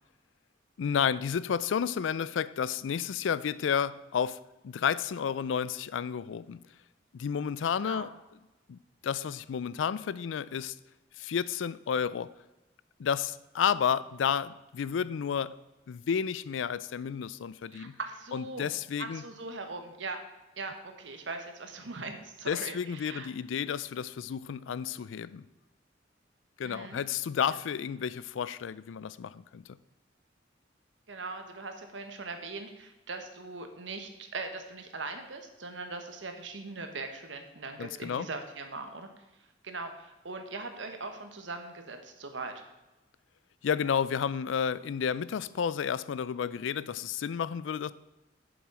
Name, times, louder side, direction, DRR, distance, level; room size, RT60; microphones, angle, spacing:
voice 1, 0.8-6.6 7.1-8.1 8.7-10.8 11.2-12.3 13.0-15.6 15.9-18.0 18.3-19.2 22.5-25.5 26.6-29.8 37.8-38.3 43.6-47.9, left 7 dB, 85° left, 0.4 m, -31 dB
voice 2, 17.7-18.7 19.0-20.2 20.6-23.3 26.6-27.0 31.1-39.1 39.6-42.5, right 3 dB, 80° right, 1.2 m, -40 dB
7.3 x 7.2 x 4.8 m
head